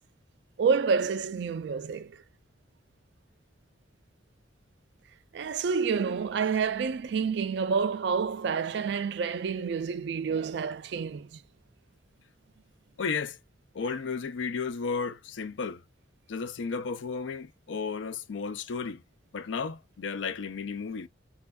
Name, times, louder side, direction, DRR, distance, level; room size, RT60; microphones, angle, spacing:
voice 1, 0.6-2.2 5.3-11.4, right 5 dB, 65° right, 0.3 m, -28 dB
voice 2, 13.0-13.4 13.7-15.8 16.3-19.0 19.3-21.1, left 5 dB, 80° left, 0.4 m, -33 dB
4.3 x 2.3 x 2.2 m
head